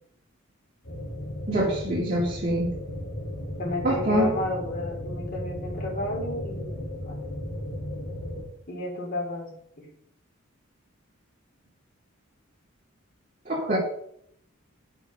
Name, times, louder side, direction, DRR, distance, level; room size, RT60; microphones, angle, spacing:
sound 1, 0.8-8.4, left 1 dB, 85° left, 3.7 m, -35 dB
voice 1, 1.5-2.7 3.8-4.3 13.5-13.8, right 1 dB, 35° right, -6 dB, 2.3 m, -25 dB
voice 2, 3.6-7.2 8.7-9.5 9.8-9.9, left 2 dB, 45° left, -2 dB, 3.2 m, -32 dB
10.0 x 6.2 x 5.6 m, 0.70 s
head